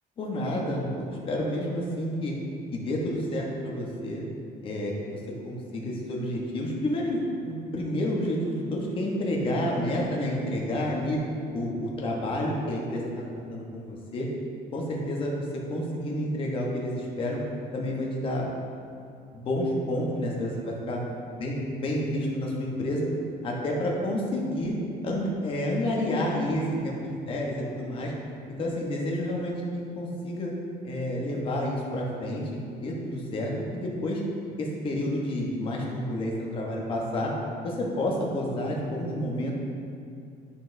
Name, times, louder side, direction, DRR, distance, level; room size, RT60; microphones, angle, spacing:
voice 1, 0.2-2.3 2.7-4.2 4.6-7.2 7.4-11.2 11.5-14.3 14.7-17.4 17.7-18.5 19.3-21.0 21.4-23.1 23.4-24.8 25.0-28.1 28.5-30.5 30.8-34.2 34.6-37.3 37.6-39.5, left 1 dB, 30° left, -2 dB, 1.0 m, -29 dB
9.8 x 5.9 x 2.6 m, 2.4 s
cardioid pair, 155°, 17 cm